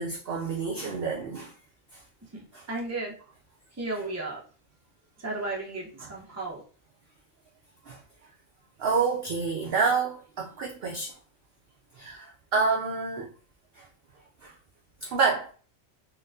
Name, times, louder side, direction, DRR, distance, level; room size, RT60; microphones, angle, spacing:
voice 1, 0.0-1.5 1.9-2.0 2.5-2.6 6.0-6.1 7.9-8.0 8.8-11.1 12.0-13.3 13.8-13.9 14.4-14.5 15.0-15.5, right 5 dB, 65° right, 0.6 m, -28 dB
voice 2, 2.3-3.1 3.7-4.4 5.2-6.6, right 2 dB, 15° right, 0.6 m, -34 dB
4.0 x 2.2 x 2.6 m
omnidirectional pair, 1.4 m